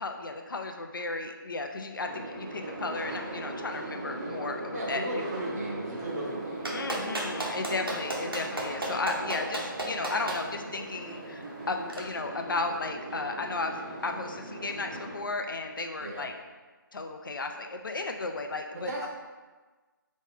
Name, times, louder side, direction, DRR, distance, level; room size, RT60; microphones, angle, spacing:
voice 1, 0.0-5.3 6.7-16.3 16.9-19.1, left 3 dB, 65° left, 4 dB, 0.5 m, -34 dB
sound 1, 2.0-15.2, right 2 dB, 20° right, 0.8 m, -39 dB
voice 2, 4.7-7.0 16.0-16.2 18.9-19.1, right 1 dB, 45° right, -3 dB, 1.1 m, -36 dB
Clapping, 6.6-10.4 11.9-12.0, right 1 dB, 90° right, 1.2 m, -32 dB
4.3 x 3.1 x 3.7 m, 1.3 s
figure-of-eight pair, 155°, 12 cm